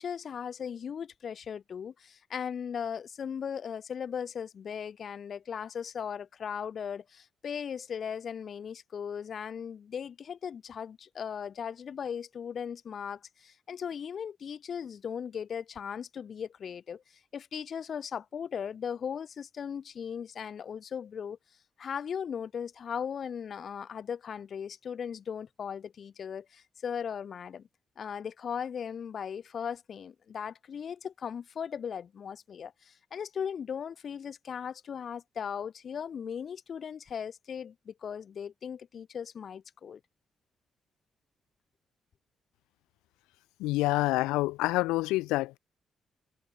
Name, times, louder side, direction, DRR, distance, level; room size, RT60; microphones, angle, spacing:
voice 1, 0.0-21.4 21.8-27.7 28.0-40.0, left 7 dB, 60° left, 2.7 m, -38 dB
voice 2, 43.6-45.6, left 20 dB, 85° left, 0.7 m, -27 dB
supercardioid pair, 50°, 0 cm